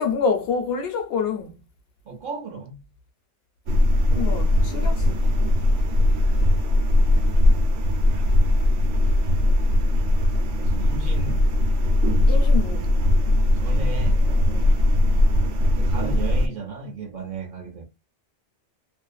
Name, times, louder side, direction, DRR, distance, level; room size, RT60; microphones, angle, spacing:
voice 1, 0.0-1.5 4.1-5.2 12.3-12.9 14.5-14.8, left 5 dB, 65° left, 0.8 m, -27 dB
voice 2, 2.1-2.9 10.5-11.5 13.5-14.2 15.7-17.9, right 4 dB, 55° right, 0.7 m, -35 dB
sound 1, 3.7-16.5, left 1 dB, 90° right, 1.0 m, -19 dB
2.5 x 2.3 x 2.3 m
omnidirectional pair, 1.2 m